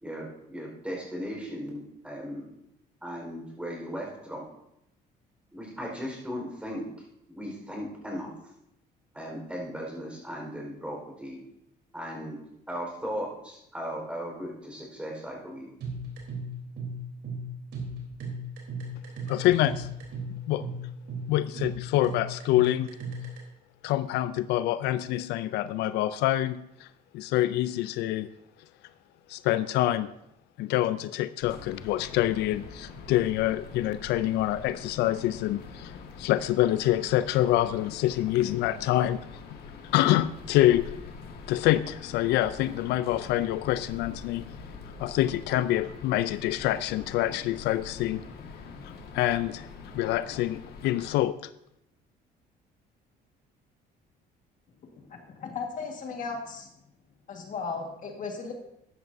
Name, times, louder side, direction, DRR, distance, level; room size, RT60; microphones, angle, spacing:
voice 1, 0.0-2.5 3.0-4.4 5.5-6.8 7.3-8.3 9.1-11.4 11.9-12.4 12.7-15.7, equal, 5° right, -1 dB, 4.4 m, -37 dB
sound 1, 15.8-23.4, right 1 dB, 75° right, 3.5 m, -36 dB
voice 2, 19.3-19.9 20.5-20.6 21.3-22.9 23.8-26.9 27.1-28.3 29.3-30.1 30.6-35.9 36.2-39.2 39.9-40.9 41.5-44.4 45.0-48.2 49.1-49.7 49.9-51.3, left 14 dB, 85° left, 15 dB, 0.4 m, -26 dB
sound 2, 31.4-51.2, left 4 dB, 65° left, 1.7 m, -44 dB
voice 3, 54.8-56.7 57.3-58.5, left 4 dB, 50° left, 2 dB, 1.7 m, -36 dB
13.5 x 10.5 x 2.7 m, 0.82 s
cardioid pair, 110°, 17 cm